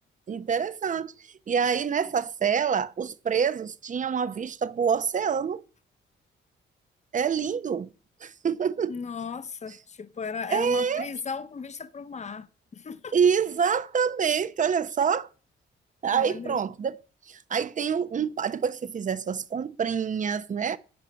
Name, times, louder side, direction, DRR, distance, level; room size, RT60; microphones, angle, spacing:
voice 1, 0.3-1.1 1.5-5.6 7.1-7.9 8.2-8.9 10.5-11.1 13.1-15.3 16.0-17.0 17.3-20.8, right 7 dB, 40° right, 0.9 m, -26 dB
voice 2, 8.9-12.5 12.7-13.2 16.1-16.6, left 5 dB, 35° left, 1.1 m, -36 dB
13.0 x 5.0 x 8.6 m
cardioid pair, 90°, 20 cm